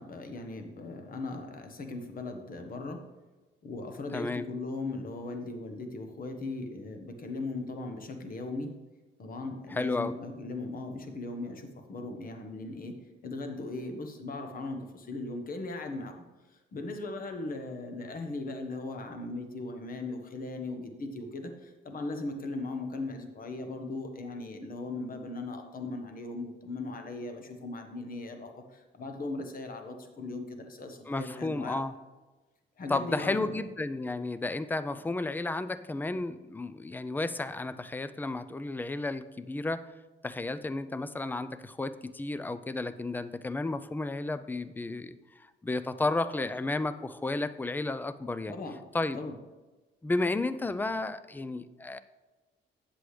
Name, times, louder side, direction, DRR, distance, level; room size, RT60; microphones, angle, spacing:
voice 1, 0.0-3.0 3.6-8.7 9.2-13.0 13.2-16.3 16.7-31.8 32.8-33.6 48.5-48.8 49.1-49.3, left 2 dB, 45° left, 5 dB, 1.2 m, -38 dB
voice 2, 4.1-4.5 9.7-10.1 31.1-31.9 32.9-39.9 40.2-48.5 48.9-49.2 50.0-52.0, left 2 dB, 10° left, 14 dB, 0.4 m, -32 dB
8.3 x 7.6 x 3.3 m, 1.2 s
cardioid pair, 90°, 20 cm